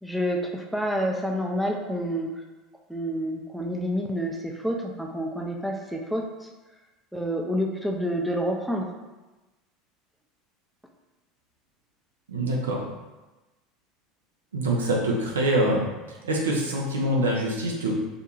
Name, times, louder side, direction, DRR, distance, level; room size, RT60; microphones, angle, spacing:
voice 1, 0.0-2.4 2.9-6.5 7.1-8.9, equal, ahead, 0 dB, 0.4 m, -28 dB
voice 2, 12.3-12.8 14.5-15.8 16.2-17.9, right 1 dB, 75° right, -1 dB, 0.5 m, -24 dB
2.4 x 2.2 x 3.0 m, 1.1 s
figure-of-eight pair, 70°, 0 cm